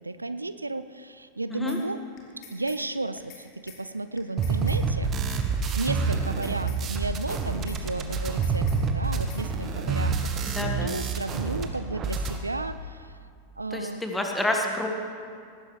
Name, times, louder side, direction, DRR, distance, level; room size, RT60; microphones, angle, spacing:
voice 1, 0.0-2.0 2.4-5.1 5.7-13.2 13.6-14.0, right 2 dB, 80° right, 13 dB, 0.4 m, -33 dB
sound 1, 1.7-1.8 2.2-2.8 3.2-3.4 3.7-3.8 4.2-4.8 5.2-5.4 5.7-5.8 6.2-6.8 7.2-7.4 7.7-7.8 8.2-8.8 9.2-9.4, left 7 dB, 40° left, 2.6 m, -47 dB
sound 2, 4.4-11.7 11.9-12.4, right 5 dB, 30° right, 1.3 m, -27 dB
voice 2, 10.5-10.9 13.7-14.9, left 1 dB, 5° left, 2 dB, 1.7 m, -28 dB
19.0 x 16.0 x 3.3 m, 2.2 s
figure-of-eight pair, 90°, 0 cm